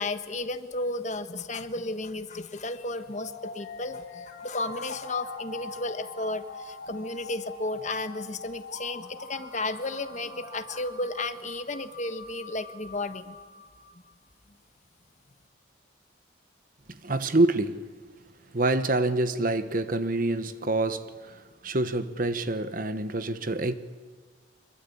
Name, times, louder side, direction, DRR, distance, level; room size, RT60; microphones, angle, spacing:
voice 1, 0.0-13.3, left 2 dB, 40° left, 1.3 m, -33 dB
sound 1, 3.0-13.9, left 3 dB, 75° left, 4.3 m, -43 dB
voice 2, 16.9-17.9 18.5-23.7, right 2 dB, 45° right, 1.2 m, -27 dB
25.0 x 22.5 x 8.6 m
head